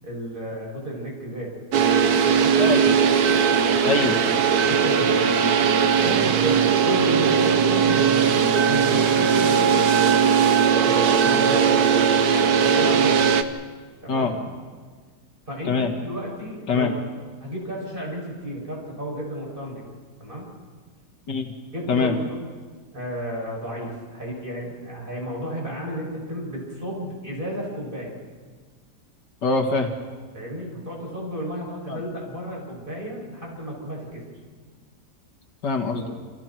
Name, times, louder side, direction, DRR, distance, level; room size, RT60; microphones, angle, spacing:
voice 1, 0.0-1.5 2.2-2.6 4.7-5.2 6.0-10.1 10.8-11.8 12.6-13.5 14.0-14.3 15.5-16.9 17.4-19.9 20.2-20.5 21.7-22.5 22.9-28.2 30.3-34.2, equal, 30° right, -3 dB, 7.7 m, -32 dB
sound 1, 1.7-13.4, right 6 dB, 65° right, 1.4 m, -19 dB
voice 2, 3.8-4.2 14.1-14.3 15.7-15.9 16.7-16.9 21.3-21.5 21.9-22.1 29.4-29.9 31.9-32.0 35.6-36.2, left 4 dB, 85° left, 3 dB, 2.4 m, -23 dB
28.5 x 28.0 x 4.6 m, 1.5 s
omnidirectional pair, 1.8 m